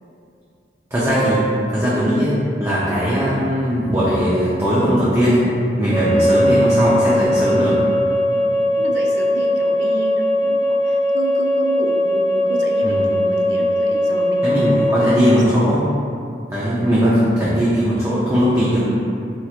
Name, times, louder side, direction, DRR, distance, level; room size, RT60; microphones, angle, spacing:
voice 1, 0.9-1.4 1.7-5.4 5.8-7.8 12.8-13.0 14.4-15.9 16.5-18.8, equal, 15° right, -9 dB, 0.4 m, -18 dB
sound 1, 1.1-1.5 5.9-15.2, equal, 25° left, 0.8 m, -19 dB
voice 2, 8.3-15.7, right 1 dB, 80° right, -1 dB, 0.5 m, -30 dB
4.3 x 2.9 x 2.4 m, 2.6 s
head